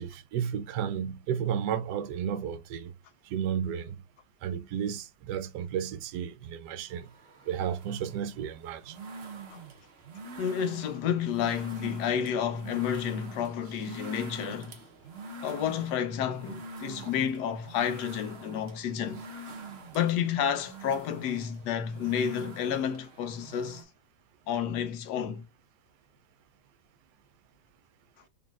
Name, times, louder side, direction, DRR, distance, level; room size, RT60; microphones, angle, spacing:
voice 1, 0.0-2.9 3.2-4.0 4.4-7.1 7.5-9.0 17.0-17.1, right 8 dB, 80° right, 1.2 m, -33 dB
sound 1, 6.9-23.8, right 3 dB, 45° right, 0.9 m, -45 dB
voice 2, 10.4-14.8 15.4-19.2 19.9-23.8 24.5-25.4, left 8 dB, 75° left, 1.3 m, -30 dB
3.9 x 3.6 x 2.3 m
omnidirectional pair, 1.8 m